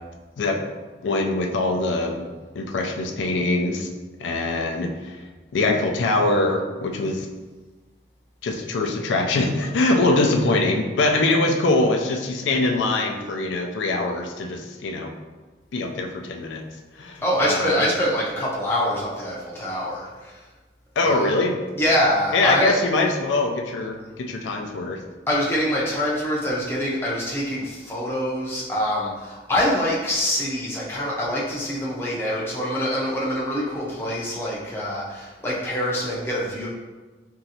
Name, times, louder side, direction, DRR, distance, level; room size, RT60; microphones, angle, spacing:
voice 1, 1.0-2.2 2.6-3.9 4.2-5.2 5.5-7.3 8.4-15.1 15.7-16.6 17.0-17.8 21.0-21.6 22.3-25.0, left 2 dB, 90° left, 2 dB, 0.4 m, -23 dB
voice 2, 17.2-20.4 21.0-21.3 21.7-22.8 25.3-36.7, equal, 15° left, -6 dB, 0.5 m, -25 dB
3.0 x 2.7 x 2.7 m, 1.2 s
head